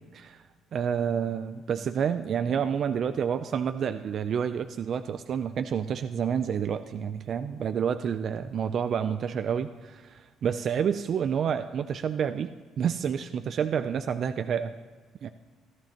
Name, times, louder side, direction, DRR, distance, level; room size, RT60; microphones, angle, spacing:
voice 1, 0.1-0.4 0.7-14.7 15.2-15.3, right 7 dB, 45° right, 9 dB, 0.4 m, -29 dB
16.0 x 12.5 x 2.9 m, 1.5 s
cardioid pair, 140°, 0 cm